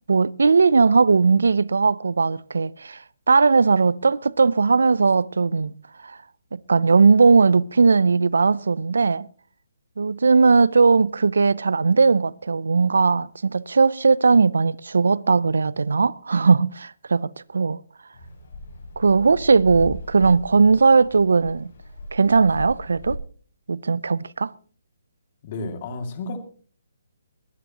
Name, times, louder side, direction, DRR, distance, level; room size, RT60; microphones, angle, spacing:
voice 1, 0.1-3.0 3.3-5.8 6.0-6.2 6.5-9.3 10.0-17.8 19.0-21.7 22.1-23.2 23.7-24.5, right 4 dB, 80° right, 0.5 m, -18 dB
sound 1, 18.1-23.2, left 1 dB, 55° left, 6.9 m, -37 dB
voice 2, 25.4-26.4, left 2 dB, 35° left, 2.3 m, -31 dB
21.5 x 12.0 x 2.9 m
hypercardioid pair, 155°, 0 cm